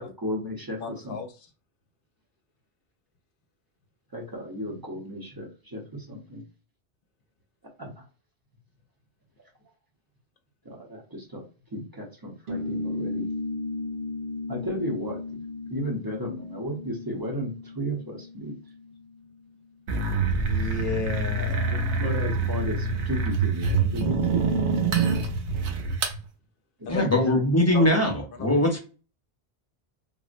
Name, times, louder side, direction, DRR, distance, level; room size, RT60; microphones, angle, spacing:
voice 1, 0.0-1.2 4.1-6.4 7.8-7.9 10.6-11.4 11.7-13.3 14.5-15.2 15.7-18.5 21.7-24.5 26.8-26.9, equal, 25° right, -1 dB, 0.6 m, -34 dB
voice 2, 0.8-1.3 20.2-22.0 26.9-27.1 27.7-27.8 28.4-28.6, left 4 dB, 60° left, 7 dB, 0.7 m, -34 dB
sound 1, 12.5-19.4, left 3 dB, 60° right, 0.8 m, -35 dB
sound 2, 19.9-26.2, right 4 dB, 90° right, 0.9 m, -25 dB
voice 3, 26.9-28.8, left 1 dB, 20° left, 1 dB, 0.5 m, -21 dB
3.6 x 2.0 x 2.5 m, 0.35 s
omnidirectional pair, 1.1 m